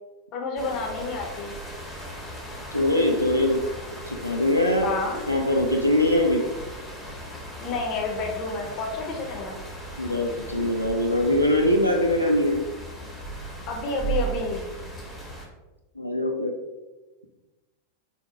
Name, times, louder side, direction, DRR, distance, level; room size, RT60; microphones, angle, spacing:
voice 1, 0.3-1.6 4.8-5.2 7.6-9.6 13.7-14.7, left 3 dB, 40° left, 1 dB, 0.6 m, -30 dB
sound 1, 0.6-15.5, right 2 dB, ahead, 0.8 m, -37 dB
voice 2, 2.7-3.6 4.1-5.0 5.3-6.4 10.0-12.6 16.0-16.5, left 1 dB, 90° left, 0 dB, 0.3 m, -22 dB
3.5 x 2.1 x 2.9 m, 1.1 s
figure-of-eight pair, 90°, 0 cm